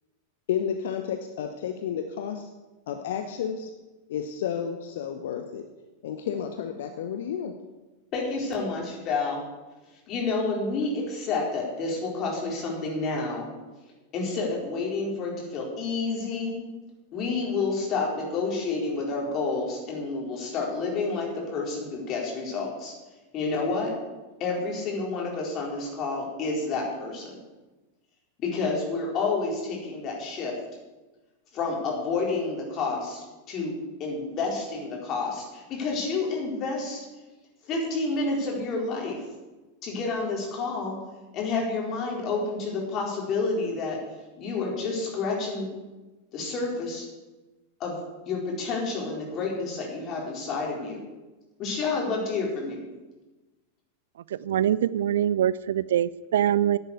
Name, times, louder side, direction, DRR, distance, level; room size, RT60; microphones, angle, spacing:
voice 1, 0.5-2.5 2.9-3.7 4.1-5.6 6.0-7.5, left 8 dB, 55° left, 6 dB, 0.9 m, -31 dB
voice 2, 8.1-9.4 10.1-13.5 14.1-16.5 17.1-22.9 23.3-23.9 24.4-27.4 28.4-30.5 31.5-33.7 34.0-37.0 37.6-39.2 39.8-41.0 41.3-44.0 44.4-45.7 46.3-47.1 47.8-48.0 48.3-51.0 51.6-52.8, left 3 dB, 35° left, -1 dB, 4.2 m, -29 dB
voice 3, 54.4-56.8, right 10 dB, 60° right, 19 dB, 0.4 m, -23 dB
11.0 x 8.3 x 8.3 m, 1.1 s
figure-of-eight pair, 90°, 0 cm